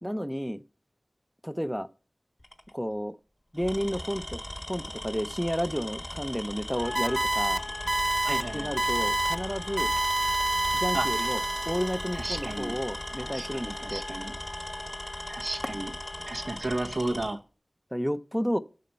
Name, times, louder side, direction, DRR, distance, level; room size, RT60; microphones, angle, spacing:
voice 1, 0.0-0.6 1.4-1.9 2.7-3.2 3.5-7.6 8.5-9.9 10.7-14.0 17.9-18.6, equal, ahead, 0.7 m, -31 dB
Tools, 2.4-2.7 3.5-17.4, left 1 dB, 25° left, 1.3 m, -39 dB
Wind instrument woodwind instrument, 6.7-16.6, left 2 dB, 75° left, 2.0 m, -41 dB
sound 1, 6.9-7.6 7.9-8.4 8.8-9.3 9.8-12.1, right 2 dB, 55° right, 0.7 m, -27 dB
voice 2, 8.2-8.7 10.9-11.3 12.2-12.8 13.2-14.4 15.3-15.9 16.3-17.4, right 2 dB, 80° right, 1.0 m, -33 dB
9.3 x 6.5 x 5.7 m
wide cardioid pair, 45°, 0 cm